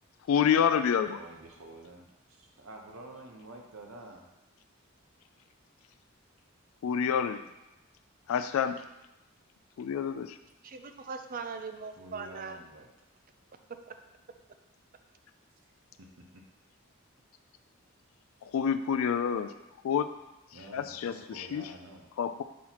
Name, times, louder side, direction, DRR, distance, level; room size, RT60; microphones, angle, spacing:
voice 1, 0.3-1.2 6.8-7.4 8.3-8.8 9.8-10.4 18.4-19.5 19.8-20.1 20.7-21.7 22.2-22.4, left 7 dB, 80° left, 10 dB, 0.3 m, -28 dB
voice 2, 1.1-4.2 12.0-12.9 16.0-16.4 20.5-22.1, right 2 dB, 70° right, 1 dB, 0.8 m, -49 dB
voice 3, 10.6-12.6 13.9-14.0, right 5 dB, 40° right, 7 dB, 0.4 m, -40 dB
6.2 x 5.6 x 3.0 m, 0.96 s
head